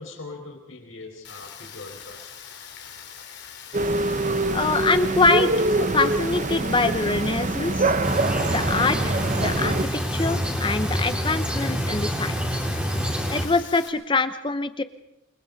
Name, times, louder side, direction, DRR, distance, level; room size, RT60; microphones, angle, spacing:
voice 1, 0.0-2.3, left 3 dB, 80° left, 1 dB, 4.7 m, -41 dB
Rain, 1.2-13.9, left 8 dB, 55° left, 3.4 m, -42 dB
sound 1, 3.7-9.8, right 2 dB, 40° right, 0.9 m, -24 dB
voice 2, 4.5-7.9 8.5-12.4 13.3-14.8, left 3 dB, 25° left, 11 dB, 0.8 m, -24 dB
sound 2, 8.0-13.5, equal, 5° right, 3.7 m, -27 dB
28.5 x 23.0 x 4.1 m, 0.89 s
head